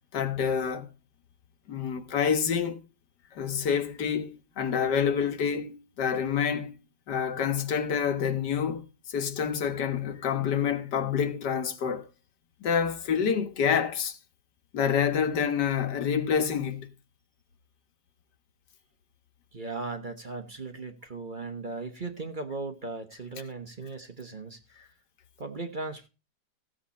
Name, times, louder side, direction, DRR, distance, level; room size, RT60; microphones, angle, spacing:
voice 1, 0.1-0.9 1.7-2.8 3.3-6.7 7.1-12.1 12.6-14.2 14.7-16.9, left 7 dB, 80° left, 1.8 m, -27 dB
voice 2, 19.5-24.6 25.4-26.1, right 3 dB, 35° right, 1.2 m, -37 dB
15.0 x 7.8 x 4.2 m
omnidirectional pair, 1.8 m